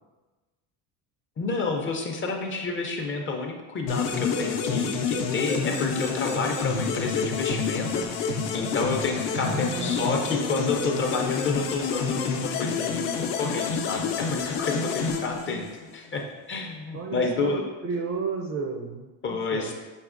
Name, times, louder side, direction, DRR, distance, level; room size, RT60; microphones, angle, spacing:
voice 1, 1.4-15.7 15.9-17.6 19.2-19.7, left 4 dB, 30° left, 2 dB, 0.5 m, -29 dB
sound 1, 3.9-15.9, left 5 dB, 75° left, 0.6 m, -28 dB
voice 2, 9.4-10.6 15.0-15.7 16.9-17.6 17.8-19.7, right 5 dB, 35° right, 3 dB, 0.4 m, -33 dB
6.3 x 2.8 x 2.5 m, 1.2 s
cardioid pair, 115°, 42 cm